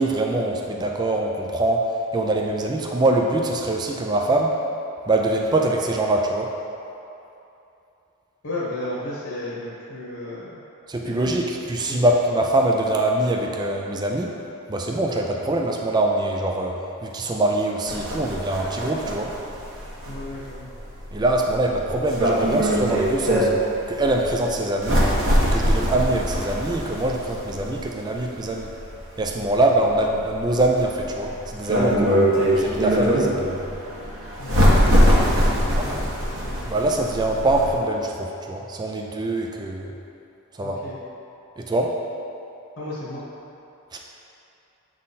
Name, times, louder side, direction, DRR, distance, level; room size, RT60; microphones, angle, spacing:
voice 1, 0.0-1.8 2.1-4.5 5.1-6.5 10.9-14.3 14.7-19.3 21.1-23.5 23.9-25.0 25.4-28.7 29.2-32.2 32.5-33.6 35.8-36.0 36.7-39.9 40.5-40.8 41.6-41.9 43.9-44.0, right 2 dB, 20° right, 1 dB, 0.4 m, -23 dB
voice 2, 8.4-10.6 11.0-11.2 11.9-12.0 20.0-20.7 34.4-35.0 35.3-36.5 40.6-41.0 42.8-43.2, left 1 dB, 60° left, -9 dB, 1.2 m, -34 dB
sound 1, 17.9-37.7, equal, 55° right, 1.3 m, -23 dB
7.5 x 3.8 x 4.1 m, 2.8 s
head